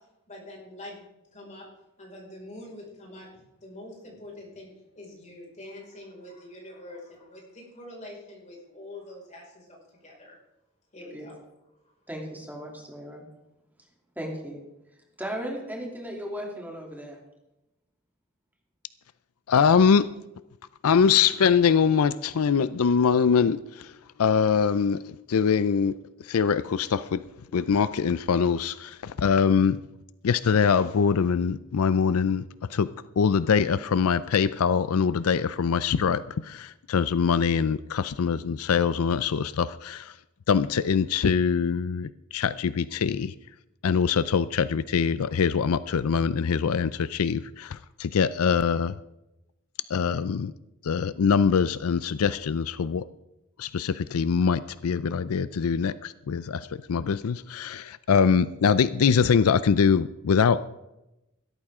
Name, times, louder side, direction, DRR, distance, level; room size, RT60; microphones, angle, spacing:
voice 1, 0.3-1.7 2.0-10.4 10.9-11.4, left 1 dB, 35° left, -2 dB, 5.2 m, -45 dB
voice 2, 12.1-13.2 14.2-14.6 15.2-17.2, equal, 10° right, -1 dB, 2.8 m, -36 dB
voice 3, 19.5-20.1 20.8-23.9 24.2-25.0 25.3-26.0 26.2-27.2 27.5-29.8 30.2-32.9 33.2-40.1 40.5-43.3 43.8-48.9 49.9-50.5 50.8-53.0 53.6-60.6, left 6 dB, 85° left, 15 dB, 0.4 m, -23 dB
16.5 x 13.0 x 3.6 m, 0.92 s
head